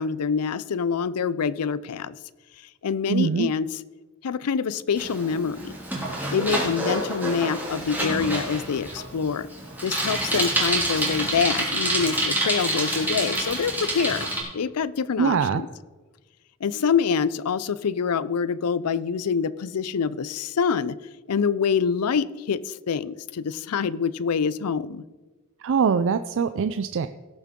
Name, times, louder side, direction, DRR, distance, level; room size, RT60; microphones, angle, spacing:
voice 1, 0.0-2.2 2.8-3.7 4.2-5.7 6.3-9.5 9.8-14.3 14.5-15.7 16.6-21.0 21.3-25.0, left 6 dB, 85° left, 17 dB, 0.5 m, -26 dB
voice 2, 3.1-3.5 15.2-15.6 25.6-27.1, right 6 dB, 60° right, 10 dB, 0.4 m, -23 dB
Bicycle, 5.0-14.4, right 1 dB, 10° right, 2.7 m, -27 dB
17.5 x 7.3 x 3.7 m, 1.3 s
head